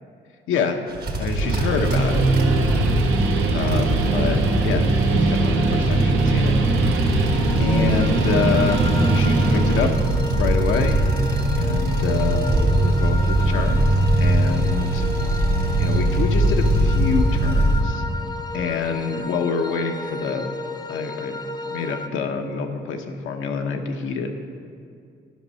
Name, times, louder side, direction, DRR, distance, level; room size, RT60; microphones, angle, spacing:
voice 1, 0.5-0.8 1.2-2.2 3.5-4.4 4.6-6.5 7.6-8.8 9.1-9.9 10.3-11.1 11.5-15.0 15.8-18.0 18.5-20.5 20.9-21.4 21.6-24.3, left 5 dB, 80° left, 4 dB, 0.9 m, -27 dB
sound 1, 0.9-17.8, right 1 dB, 50° right, 1.3 m, -21 dB
Guitar, 1.2-9.9, right 3 dB, 75° right, 1.1 m, -23 dB
sound 2, 7.2-22.1, left 2 dB, 20° left, 0.4 m, -33 dB
11.5 x 5.4 x 5.5 m, 2.3 s
cardioid pair, 90°, 20 cm